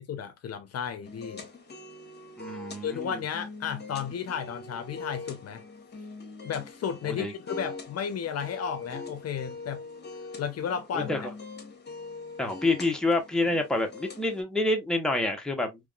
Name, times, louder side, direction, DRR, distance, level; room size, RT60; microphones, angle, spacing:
voice 1, 0.1-1.5 2.8-5.6 6.4-9.8 10.4-11.3, left 7 dB, 55° left, 0.6 m, -33 dB
sound 1, 1.0-14.4, left 3 dB, 35° left, 1.3 m, -43 dB
voice 2, 2.4-3.2 7.0-7.3 10.9-11.2 12.4-15.8, left 2 dB, ahead, 1.0 m, -28 dB
3.5 x 3.1 x 2.3 m
cardioid pair, 90°, 30 cm